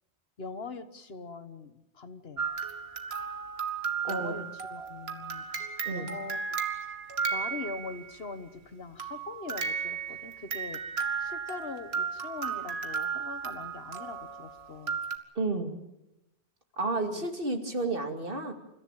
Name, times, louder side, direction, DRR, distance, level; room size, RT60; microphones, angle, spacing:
voice 1, 0.4-2.5 4.1-5.4 5.9-6.6 7.3-10.8 11.2-15.0 16.9-17.3, left 4 dB, 65° left, 10 dB, 1.7 m, -42 dB
sound 1, 2.4-8.1 9.0-15.2, right 6 dB, 70° right, 2.2 m, -34 dB
voice 2, 4.0-4.4 5.8-6.1 15.3-15.8 16.8-18.5, right 2 dB, 55° right, 5 dB, 2.8 m, -31 dB
29.0 x 15.0 x 9.0 m, 0.89 s
omnidirectional pair, 1.1 m